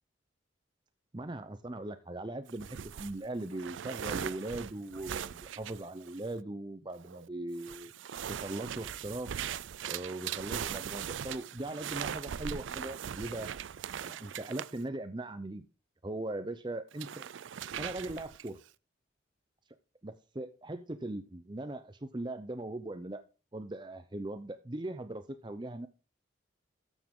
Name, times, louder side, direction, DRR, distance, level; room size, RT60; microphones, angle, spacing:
voice 1, 1.1-7.9 8.3-9.3 9.8-13.5 14.0-15.7 16.0-17.2 17.8-18.6 20.0-23.2 23.5-25.9, right 2 dB, 25° right, 10 dB, 0.6 m, -39 dB
sound 1, 2.5-6.4 7.0-7.3 7.6-14.8 16.9-18.6, right 9 dB, 80° right, 0.4 m, -40 dB
13.5 x 7.2 x 3.7 m, 0.32 s
head